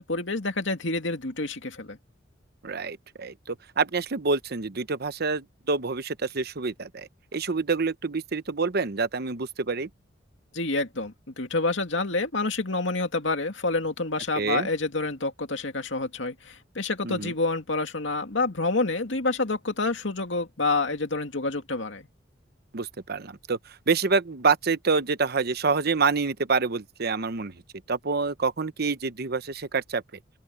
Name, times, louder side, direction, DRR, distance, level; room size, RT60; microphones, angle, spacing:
voice 1, 0.0-2.0 10.5-22.0, left 3 dB, 75° left, 2.5 m, -28 dB
voice 2, 2.6-9.9 14.4-14.7 17.0-17.3 22.7-23.6 23.9-27.5 27.9-30.0, right 4 dB, 55° right, 0.9 m, -27 dB
open air
head